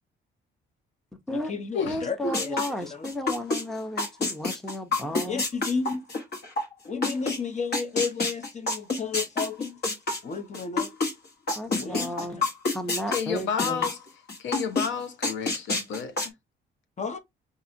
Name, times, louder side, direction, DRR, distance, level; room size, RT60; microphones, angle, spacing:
voice 1, 1.3-2.6 2.8-3.1 5.3-6.1 6.9-9.8 10.2-10.9 11.7-12.4 17.0-17.2, left 4 dB, 35° left, 0.8 m, -32 dB
voice 2, 1.8-5.4 11.6-12.4 12.7-13.9, left 1 dB, ahead, 0.7 m, -33 dB
sound 1, 2.3-3.6 4.0-7.4 7.7-11.1 11.5-14.0 14.3-14.9 15.2-16.3, left 3 dB, 55° left, 1.4 m, -27 dB
voice 3, 13.1-14.0 14.4-16.1, left 7 dB, 70° left, 0.8 m, -30 dB
4.0 x 2.7 x 2.5 m
cardioid pair, 90°, 20 cm